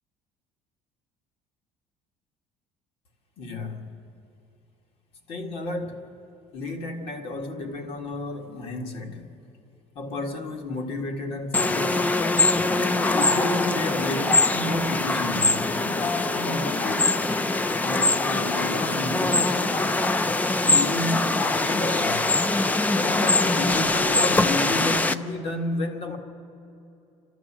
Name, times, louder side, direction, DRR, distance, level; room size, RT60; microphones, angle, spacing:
voice 1, 3.4-4.0 5.3-6.1 6.5-9.3 10.0-12.2 12.7-17.2 17.8-20.0 20.6-22.3 23.0-26.2, left 2 dB, 50° left, 4 dB, 2.0 m, -31 dB
sound 1, 11.5-25.2, left 2 dB, 10° left, 0.5 m, -23 dB
29.0 x 12.5 x 7.4 m, 2.7 s
cardioid pair, 170°, 13 cm